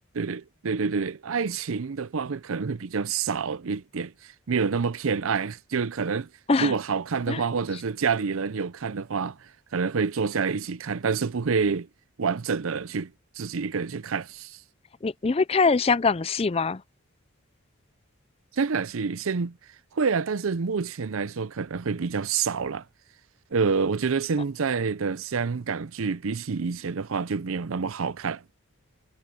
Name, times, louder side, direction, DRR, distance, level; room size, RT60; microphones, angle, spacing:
voice 1, 0.1-4.1 4.5-6.3 6.6-9.4 9.7-11.9 12.2-13.1 13.4-14.6 18.5-19.6 19.9-22.8 23.5-28.4, right 5 dB, 70° right, 0.6 m, -27 dB
voice 2, 15.0-16.8, left 4 dB, 25° left, 0.4 m, -23 dB
head